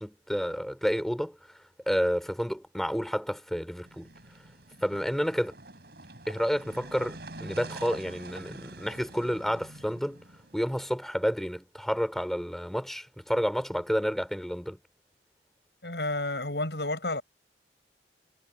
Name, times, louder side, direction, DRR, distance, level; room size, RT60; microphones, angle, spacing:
voice 1, 0.0-1.4 1.9-4.1 4.8-5.6 6.3-10.3 10.5-14.8, equal, ahead, 4.9 m, -30 dB
sound 1, 3.9-10.9, right 2 dB, 65° right, 6.0 m, -46 dB
voice 2, 15.8-17.2, left 2 dB, 70° left, 7.6 m, -31 dB
head